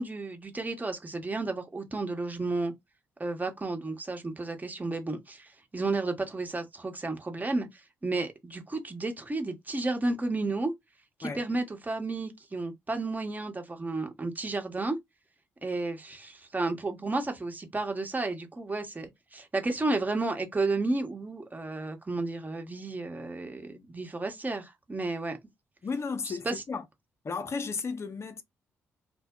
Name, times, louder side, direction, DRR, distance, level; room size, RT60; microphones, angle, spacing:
voice 1, 0.0-2.7 3.2-7.7 8.0-10.7 11.2-15.0 15.6-25.4 26.2-26.5, right 2 dB, 25° right, 1.0 m, -32 dB
voice 2, 25.8-26.9 27.2-28.4, left 5 dB, 45° left, 0.6 m, -34 dB
2.1 x 2.1 x 3.7 m
hypercardioid pair, 40°, 6 cm